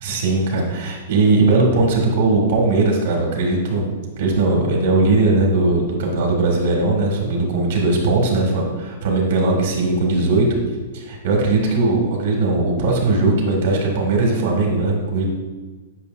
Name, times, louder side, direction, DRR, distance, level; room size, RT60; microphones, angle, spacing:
voice 1, 0.0-3.8 4.2-10.5 10.9-15.2, right 3 dB, 75° right, -1 dB, 1.7 m, -19 dB
8.4 x 5.2 x 2.5 m, 1.3 s
hypercardioid pair, 145°, 0 cm